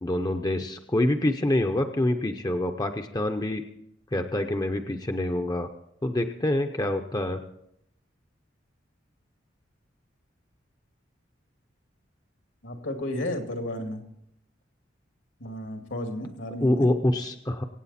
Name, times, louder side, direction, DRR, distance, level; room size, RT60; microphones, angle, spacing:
voice 1, 0.0-3.6 4.1-5.7 6.0-7.4 16.6-17.6, left 1 dB, 20° left, 5 dB, 0.7 m, -26 dB
voice 2, 12.6-14.0 15.4-16.9, left 1 dB, 75° left, 4 dB, 2.3 m, -33 dB
24.0 x 8.9 x 4.2 m, 0.74 s
head